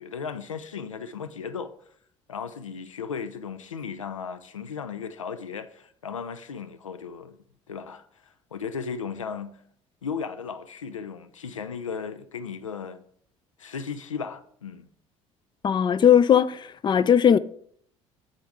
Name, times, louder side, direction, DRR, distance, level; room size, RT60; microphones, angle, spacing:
voice 1, 0.0-1.7 2.3-7.4 7.7-9.6 10.0-13.0 13.6-14.9, left 6 dB, 85° left, 0.5 m, -36 dB
voice 2, 15.6-17.4, left 8 dB, 30° left, 0.4 m, -18 dB
7.7 x 7.3 x 3.6 m
figure-of-eight pair, 55°, 16 cm